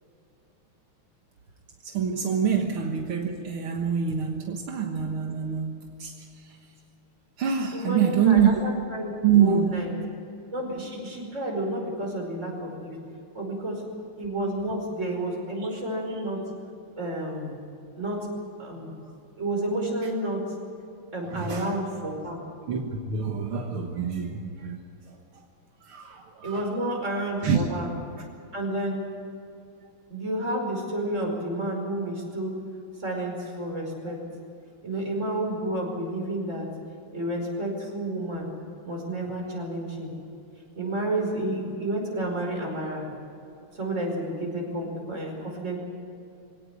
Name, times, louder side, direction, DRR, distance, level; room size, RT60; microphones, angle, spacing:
voice 1, 1.8-6.1 7.4-8.5 9.2-10.0 21.2-21.7 22.7-22.8 23.1-24.8 25.9-26.7 27.4-27.7, right 7 dB, 75° right, 2 dB, 2.3 m, -25 dB
voice 2, 7.7-9.1 9.3-9.9 10.5-13.0 13.3-13.8 14.2-16.4 17.0-17.6 18.0-18.3 18.6-18.9 19.4-20.4 21.1-22.4 26.4-27.9 28.5-29.0 30.1-32.6 33.0-34.2 34.8-36.7 37.1-38.5 38.8-40.1 40.8-43.1 43.8-45.8, right 1 dB, 30° right, 0 dB, 5.5 m, -30 dB
23.5 x 17.5 x 8.2 m, 2.6 s
omnidirectional pair, 2.4 m